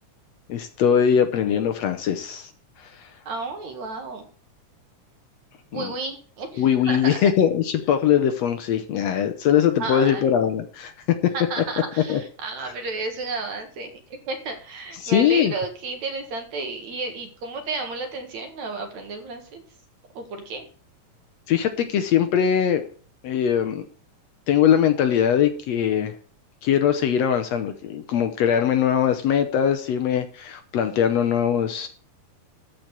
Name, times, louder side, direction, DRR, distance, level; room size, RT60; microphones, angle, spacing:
voice 1, 0.5-2.5 2.8-3.1 5.7-5.9 6.6-10.9 11.2-11.3 12.1-12.2 15.0-15.5 21.5-22.8 23.2-23.9 24.5-26.1 26.6-31.9, left 9 dB, 70° left, 8 dB, 1.8 m, -21 dB
voice 2, 3.3-4.3 5.7-7.3 9.8-10.3 11.3-19.6 20.1-20.7, right 3 dB, 65° right, 5 dB, 3.0 m, -32 dB
13.5 x 4.6 x 8.0 m, 0.43 s
omnidirectional pair, 3.6 m